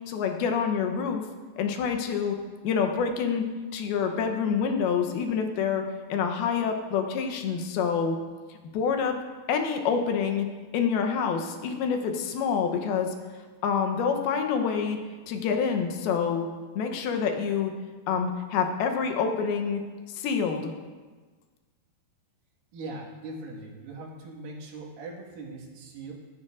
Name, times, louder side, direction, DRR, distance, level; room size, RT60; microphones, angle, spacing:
voice 1, 0.1-1.2 1.6-2.4 2.6-3.4 3.7-5.8 6.1-8.2 8.5-9.2 9.5-10.5 10.7-13.1 13.6-15.0 15.3-16.5 16.8-17.7 18.1-19.8 20.1-20.7, left 6 dB, 80° left, 5 dB, 2.7 m, -27 dB
voice 2, 22.7-26.1, right 2 dB, 65° right, -2 dB, 3.2 m, -40 dB
14.0 x 13.0 x 2.5 m, 1.4 s
omnidirectional pair, 4.4 m